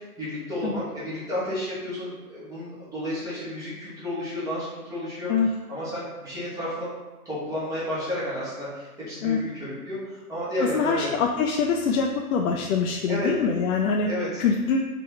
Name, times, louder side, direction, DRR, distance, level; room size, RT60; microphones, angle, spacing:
voice 1, 0.0-5.3 5.7-6.9 7.2-11.1 13.1-13.3 14.0-14.3, left 1 dB, 10° right, -9 dB, 0.8 m, -32 dB
voice 2, 10.6-14.1 14.4-14.8, left 5 dB, 65° left, 1 dB, 0.5 m, -24 dB
3.6 x 2.9 x 3.4 m, 1.1 s
hypercardioid pair, 145°, 46 cm